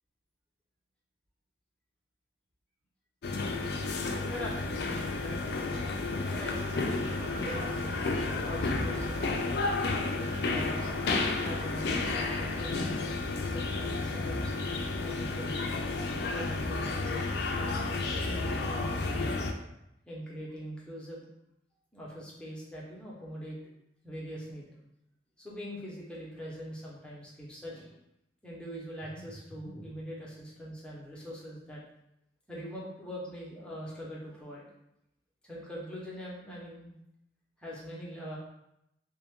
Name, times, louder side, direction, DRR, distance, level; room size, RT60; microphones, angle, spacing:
sound 1, 3.2-19.5, left 3 dB, 65° left, 0.4 m, -32 dB
voice 1, 4.3-5.4 6.3-8.0 8.5-9.8 10.1-10.9 11.4-13.1 13.4-14.5 15.0-15.6 16.3-19.5 20.1-21.3 21.9-23.6 24.0-24.7 25.4-27.9 28.4-31.8 32.5-34.6 35.4-36.9 37.6-38.4, equal, 5° left, -6 dB, 0.8 m, -42 dB
sound 2, 5.7-12.0, right 2 dB, 40° right, 0.4 m, -45 dB
3.3 x 2.4 x 3.5 m, 0.82 s
head